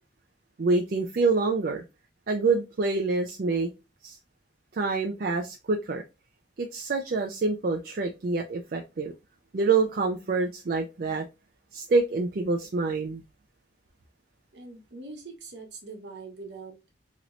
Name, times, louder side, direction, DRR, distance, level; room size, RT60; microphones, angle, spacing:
voice 1, 0.6-1.8 2.3-3.7 4.0-4.2 4.7-6.0 6.6-9.1 9.5-11.2 11.7-13.2, right 3 dB, 50° right, 0.4 m, -26 dB
voice 2, 14.5-16.9, right 3 dB, 65° right, 1.1 m, -43 dB
3.0 x 3.0 x 2.5 m
head